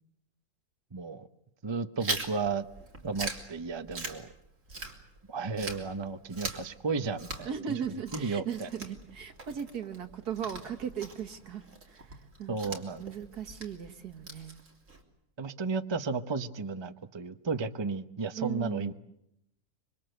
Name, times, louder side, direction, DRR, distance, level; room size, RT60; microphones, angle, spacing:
voice 1, 0.9-1.3 1.6-2.7 3.0-4.3 5.3-7.8 8.1-8.7 12.5-13.0 15.4-18.9, right 4 dB, 20° right, 9 dB, 0.8 m, -33 dB
Chewing mastication, 2.0-5.3 5.6-15.0, right 3 dB, 55° right, 3.6 m, -41 dB
voice 2, 7.4-14.6 18.4-18.9, right 8 dB, 80° right, 7 dB, 2.2 m, -38 dB
26.0 x 24.5 x 7.9 m, 0.80 s
omnidirectional pair, 1.7 m